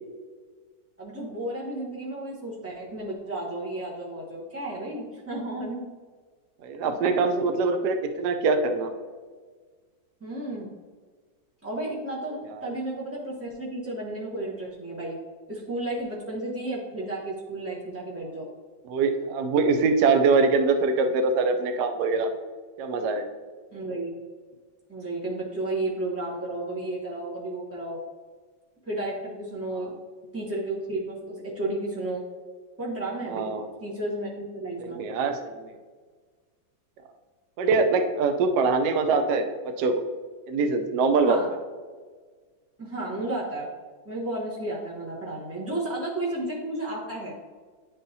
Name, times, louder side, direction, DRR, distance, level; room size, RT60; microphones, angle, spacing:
voice 1, 1.0-5.9 10.2-10.7 11.6-15.2 15.5-18.5 23.7-24.1 24.9-28.0 28.9-29.9 30.3-32.2 32.8-33.5 33.8-35.0 41.3-41.5 42.8-43.7 44.0-47.3, right 1 dB, 15° right, -5 dB, 0.5 m, -32 dB
voice 2, 6.6-8.9 18.9-22.3 22.8-23.3 33.3-33.7 34.8-35.7 37.6-40.0 40.5-41.4, right 4 dB, 75° right, 6 dB, 1.1 m, -23 dB
10.5 x 3.8 x 2.7 m, 1.5 s
omnidirectional pair, 1.9 m